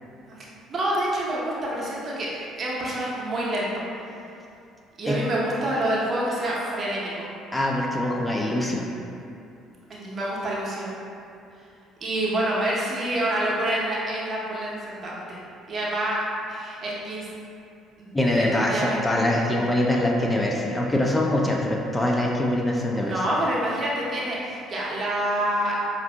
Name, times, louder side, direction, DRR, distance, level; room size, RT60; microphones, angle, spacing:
voice 1, 0.3-3.8 5.0-7.3 9.9-10.9 12.0-15.4 15.7-16.2 16.5-17.3 18.0-19.6 23.0-25.8, right 1 dB, 35° right, -6 dB, 0.7 m, -27 dB
voice 2, 7.5-8.9 18.1-23.1, left 1 dB, 15° left, -1 dB, 0.4 m, -23 dB
4.9 x 2.5 x 2.2 m, 2.6 s
figure-of-eight pair, 50°, 0 cm